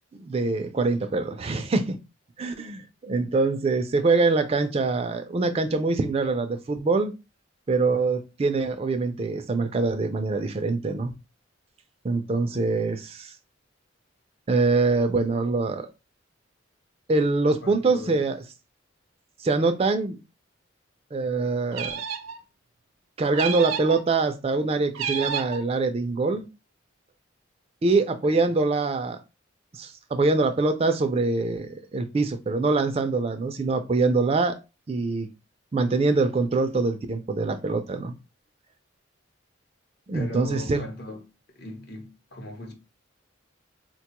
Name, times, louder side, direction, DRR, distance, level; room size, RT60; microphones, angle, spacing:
voice 1, 0.2-2.0 2.4-7.1 7.7-11.1 12.0-13.3 14.5-15.9 17.1-18.4 19.4-20.2 21.1-22.0 23.2-26.5 27.8-29.2 29.7-34.6 34.9-35.3 35.7-38.1 40.1-40.9, right 3 dB, 30° right, 0.3 m, -24 dB
voice 2, 17.6-18.2 40.1-41.2 41.6-42.7, left 2 dB, 55° left, 0.8 m, -38 dB
sound 1, 21.7-22.4 23.3-24.0 24.9-25.6, right 7 dB, 90° right, 0.5 m, -30 dB
4.2 x 2.2 x 2.9 m
head